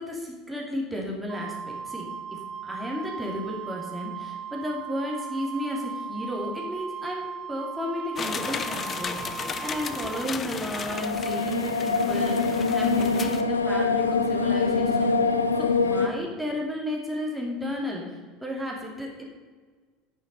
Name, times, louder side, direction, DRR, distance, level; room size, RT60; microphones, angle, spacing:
voice 1, 0.0-2.0 2.6-19.3, left 1 dB, 5° right, -2 dB, 2.8 m, -33 dB
Wind instrument woodwind instrument, 1.3-10.3, right 7 dB, 40° right, 0.5 m, -37 dB
sound 1, 8.2-13.4, left 6 dB, 30° left, 0.7 m, -35 dB
sound 2, 10.9-16.1, left 4 dB, 85° left, 0.6 m, -24 dB
9.3 x 7.3 x 5.4 m, 1.4 s
figure-of-eight pair, 70°, 0 cm